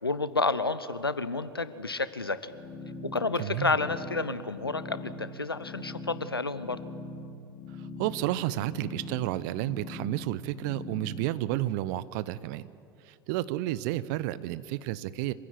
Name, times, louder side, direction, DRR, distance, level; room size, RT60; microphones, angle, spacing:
voice 1, 0.0-2.5 3.0-6.8, left 3 dB, 90° left, 14 dB, 0.8 m, -30 dB
sound 1, 2.4-11.3, left 2 dB, 50° left, 4.3 m, -42 dB
voice 2, 3.4-3.7 8.0-12.6 13.1-15.3, right 15 dB, 55° right, 17 dB, 0.8 m, -31 dB
25.5 x 15.5 x 9.7 m, 2.5 s
figure-of-eight pair, 80°, 12 cm